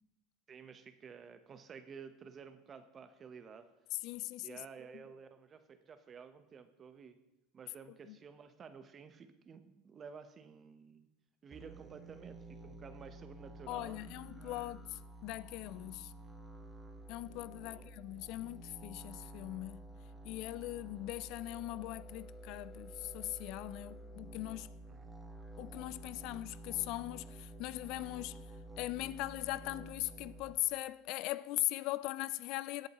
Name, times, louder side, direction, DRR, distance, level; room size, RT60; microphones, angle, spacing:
voice 1, 0.5-3.7 4.4-7.2 7.5-11.1 11.4-14.7 17.6-17.9 24.9-25.1, right 6 dB, 35° right, 1.0 m, -53 dB
voice 2, 4.0-4.6 13.7-16.1 17.1-19.8 20.2-24.7 25.6-28.4 28.8-32.9, left 17 dB, 60° left, 0.3 m, -40 dB
sound 1, 11.5-30.5, right 1 dB, 10° right, 1.9 m, -51 dB
16.5 x 7.8 x 3.0 m
hypercardioid pair, 90°, 0 cm